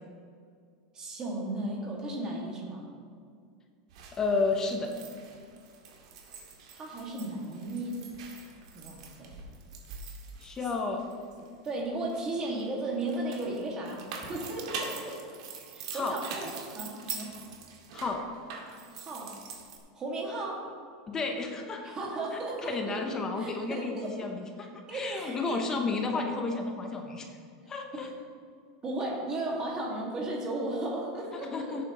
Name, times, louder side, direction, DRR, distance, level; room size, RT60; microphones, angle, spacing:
voice 1, 0.9-2.9 6.7-8.0 8.7-9.4 11.1-15.2 15.7-17.4 18.9-19.3 19.9-20.6 21.8-24.1 24.9-25.6 27.9-28.1 28.8-31.9, right 2 dB, 20° right, -2 dB, 2.0 m, -35 dB
sound 1, 3.9-11.7 12.1-19.8, right 5 dB, 70° right, 1.9 m, -44 dB
voice 2, 4.1-4.9 10.4-11.1 15.9-16.2 17.9-18.2 21.1-22.0 22.6-27.3 27.7-28.1 31.5-31.8, left 3 dB, 15° left, 3 dB, 0.9 m, -32 dB
17.0 x 8.9 x 3.1 m, 2.2 s
supercardioid pair, 170°, 4 cm